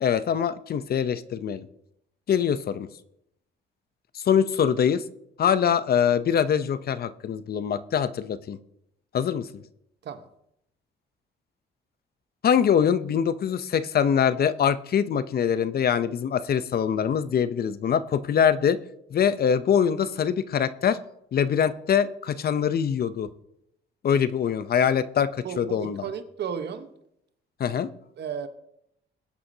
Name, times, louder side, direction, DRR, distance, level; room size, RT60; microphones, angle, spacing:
voice 1, 0.0-1.7 2.3-2.9 4.1-5.0 5.4-8.6 9.1-9.5 12.4-18.8 19.1-21.0 21.3-23.3 24.0-26.1 27.6-27.9, left 8 dB, 50° left, 0.6 m, -23 dB
voice 2, 25.4-26.9 28.2-28.5, right 7 dB, 60° right, 1.1 m, -33 dB
21.5 x 8.4 x 2.8 m
cardioid pair, 90°, 20 cm